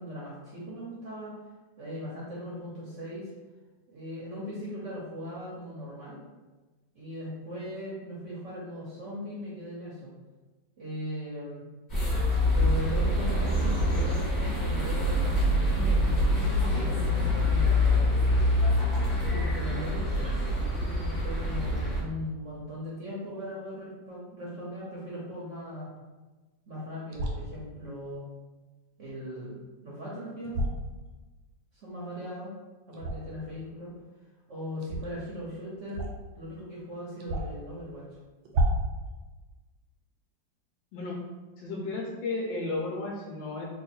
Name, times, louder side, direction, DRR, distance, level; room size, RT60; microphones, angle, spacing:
voice 1, 0.0-1.4 1.8-3.3 3.9-6.2 6.9-10.1 10.8-11.7 12.5-15.3 15.7-18.1 19.3-20.2 20.8-25.9 26.7-28.2 29.0-29.6 29.8-30.6 31.7-32.5 32.9-33.9 34.5-36.0 36.4-38.2, equal, 55° right, -6 dB, 0.9 m, -39 dB
sound 1, 11.9-22.0, left 1 dB, 30° left, 1.1 m, -25 dB
sound 2, 27.1-27.4 30.4-30.8 32.9-33.4 34.8-35.0 35.9-36.3 36.6-36.7 37.2-37.7 38.4-38.9, right 1 dB, 90° right, 1.4 m, -29 dB
voice 2, 41.6-43.6, left 2 dB, 85° left, -3 dB, 1.3 m, -33 dB
3.3 x 2.3 x 4.2 m, 1.2 s
omnidirectional pair, 2.1 m